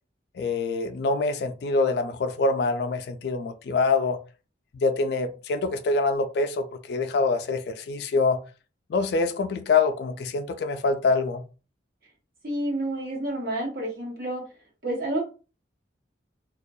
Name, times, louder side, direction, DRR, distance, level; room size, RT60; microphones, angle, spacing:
voice 1, 0.3-4.2 4.7-8.4 8.9-11.4, left 3 dB, 55° left, 0.3 m, -25 dB
voice 2, 12.4-14.4 14.8-15.2, right 1 dB, 50° right, 0.9 m, -29 dB
2.3 x 2.1 x 2.6 m
head